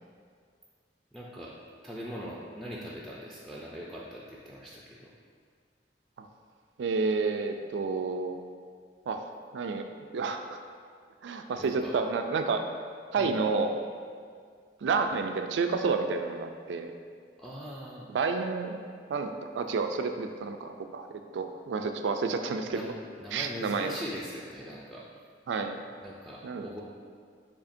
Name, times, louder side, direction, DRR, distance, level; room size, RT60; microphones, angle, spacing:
voice 1, 1.1-1.5 1.8-5.1 11.5-11.9 13.2-13.4 17.4-18.1 22.7-22.9 23.2-25.1 26.0-26.8, equal, ahead, -5 dB, 0.3 m, -41 dB
voice 2, 6.8-8.4 9.1-9.3 9.5-9.8 10.1-10.6 11.2-12.6 13.1-13.8 14.8-16.9 18.1-18.8 19.1-22.8 23.3-23.9 25.5-25.8 26.4-26.7, right 4 dB, 80° right, 6 dB, 0.3 m, -30 dB
6.9 x 2.8 x 2.6 m, 2.1 s
head